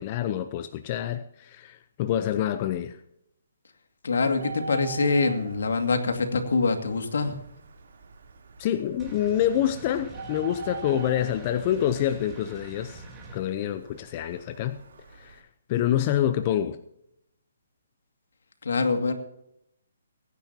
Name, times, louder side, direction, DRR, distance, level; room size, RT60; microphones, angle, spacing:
voice 1, 0.0-3.0 8.6-13.0 13.3-14.8 15.1-15.4 15.7-16.8, left 11 dB, 35° left, 10 dB, 0.7 m, -27 dB
voice 2, 4.0-7.4 18.6-19.1, left 4 dB, 75° left, 6 dB, 2.3 m, -24 dB
Bird, 4.2-15.4, right 4 dB, 65° right, 3.4 m, -43 dB
sound 1, 9.0-13.4, right 2 dB, 15° right, 3.6 m, -44 dB
22.5 x 10.5 x 2.9 m, 0.78 s
hypercardioid pair, 155°, 0 cm